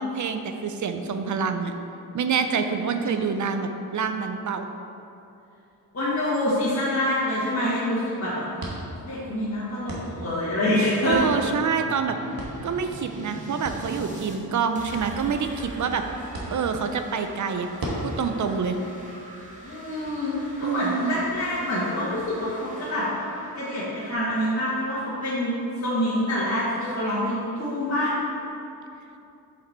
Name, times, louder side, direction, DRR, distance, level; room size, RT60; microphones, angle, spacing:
voice 1, 0.0-1.7 2.1-4.7 11.0-12.2 12.6-17.7 18.0-18.8 20.6-21.2, right 6 dB, 50° right, 7 dB, 0.5 m, -27 dB
voice 2, 3.0-3.6 5.9-8.5 9.0-11.2 19.6-23.1 23.5-25.5 25.8-28.1, left 1 dB, 40° left, -11 dB, 1.5 m, -26 dB
sound 1, 5.9-20.1, right 1 dB, 65° right, 1.4 m, -40 dB
sound 2, 9.8-14.4 14.7-26.3, right 1 dB, 20° right, 1.0 m, -44 dB
7.0 x 5.2 x 4.3 m, 2.8 s
wide cardioid pair, 160°, 38 cm